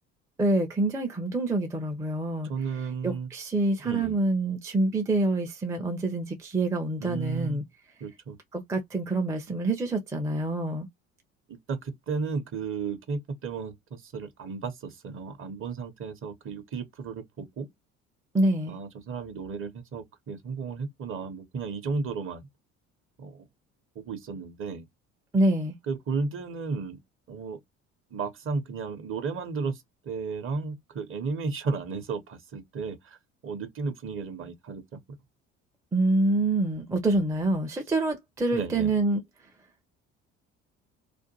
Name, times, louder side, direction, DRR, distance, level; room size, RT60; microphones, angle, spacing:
voice 1, 0.4-2.5 3.0-7.6 8.5-10.9 18.3-18.7 25.3-25.7 35.9-39.2, right 2 dB, 10° right, 0.4 m, -26 dB
voice 2, 2.5-3.3 3.8-4.2 7.0-7.6 8.0-8.4 11.5-17.7 18.7-22.5 23.2-23.4 23.9-24.8 25.9-27.0 27.3-27.6 28.1-33.2 33.4-35.2 38.5-38.9, right 4 dB, 35° right, 0.7 m, -34 dB
2.4 x 2.2 x 2.8 m
figure-of-eight pair, 55°, 38 cm